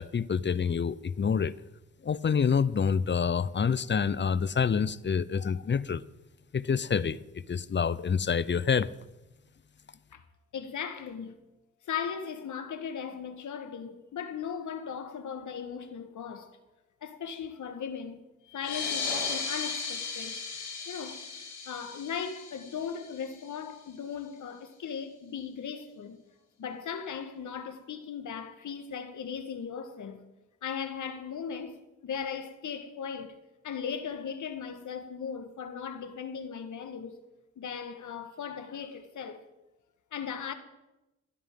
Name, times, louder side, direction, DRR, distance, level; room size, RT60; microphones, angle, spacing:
voice 1, 0.0-1.5 2.0-6.0 6.5-7.2 7.5-8.9, left 6 dB, 35° left, 0.7 m, -27 dB
voice 2, 10.5-11.4 11.9-16.6 17.0-18.2 18.5-20.4 20.9-21.2 21.6-26.2 26.6-30.2 30.6-31.8 32.0-33.3 33.6-37.2 37.6-39.4 40.1-40.5, left 7 dB, 65° left, 1.7 m, -37 dB
sound 1, 18.5-23.6, left 5 dB, 90° left, 6.6 m, -36 dB
20.5 x 12.5 x 3.8 m
hypercardioid pair, 40°, 33 cm